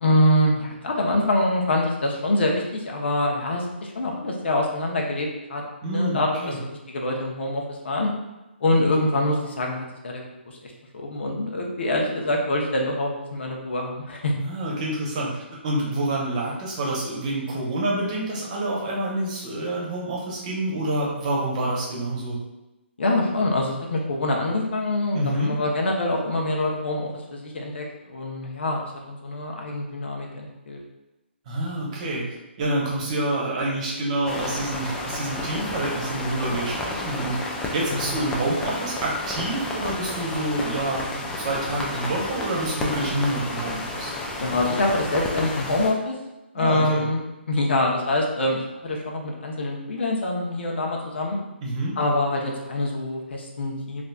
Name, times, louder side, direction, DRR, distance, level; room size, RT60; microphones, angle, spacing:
voice 1, 0.0-6.3 6.6-8.1 8.6-14.3 23.0-30.8 37.9-38.1 44.4-46.1 46.5-47.2 47.5-51.4 52.0-54.0, left 1 dB, 65° left, 0 dB, 0.8 m, -25 dB
voice 2, 5.8-6.6 14.4-22.4 25.1-25.5 31.5-37.4 37.7-44.1 46.5-47.1 51.6-52.0, right 1 dB, 35° right, -3 dB, 0.9 m, -27 dB
sound 1, 34.2-45.9, left 2 dB, 10° left, 0.3 m, -31 dB
3.9 x 2.5 x 2.3 m, 1.0 s
hypercardioid pair, 145°, 6 cm